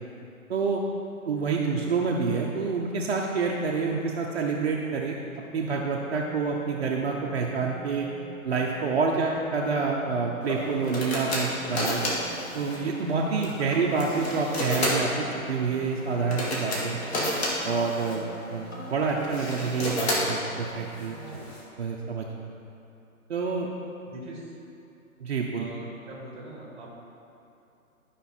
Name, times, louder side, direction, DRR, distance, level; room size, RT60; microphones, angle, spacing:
voice 1, 0.5-0.8 1.3-5.2 5.5-8.1 8.4-12.0 12.5-17.0 17.6-21.4 21.8-22.3 23.3-23.7 25.2-25.7, right 4 dB, 45° right, -2 dB, 0.8 m, -28 dB
sound 1, 5.3-21.4, equal, 15° left, 0.5 m, -45 dB
sound 2, 10.4-21.6, left 1 dB, 45° left, 2.1 m, -32 dB
voice 2, 24.1-24.5 25.5-26.9, right 1 dB, 15° right, -3 dB, 1.3 m, -42 dB
12.0 x 5.4 x 4.3 m, 2.9 s
figure-of-eight pair, 140°, 43 cm